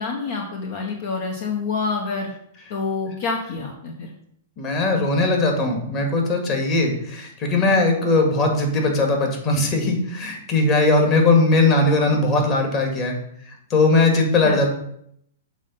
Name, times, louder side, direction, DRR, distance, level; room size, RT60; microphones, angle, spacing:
voice 1, 0.0-2.3 2.7-4.1 14.4-14.6, left 4 dB, 60° left, 1 dB, 1.1 m, -27 dB
voice 2, 4.6-13.2 13.7-14.7, left 2 dB, 35° left, 2 dB, 2.0 m, -19 dB
7.3 x 4.0 x 5.5 m, 0.71 s
hypercardioid pair, 125°, 0 cm